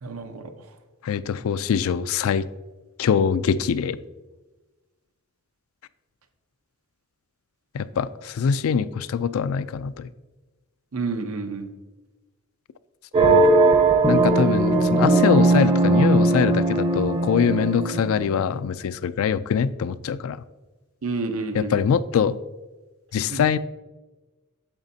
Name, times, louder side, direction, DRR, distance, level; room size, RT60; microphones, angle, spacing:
voice 1, 0.0-0.4 10.9-11.7 21.0-21.8 23.3-23.5, right 3 dB, 80° right, 0.8 m, -29 dB
voice 2, 1.0-2.5 3.0-4.0 7.7-10.1 13.1-13.5 14.1-20.4 21.5-22.4 23.1-23.6, left 7 dB, 70° left, 0.3 m, -23 dB
sound 1, 13.1-18.6, right 2 dB, 25° right, 0.7 m, -19 dB
8.9 x 7.0 x 2.7 m
head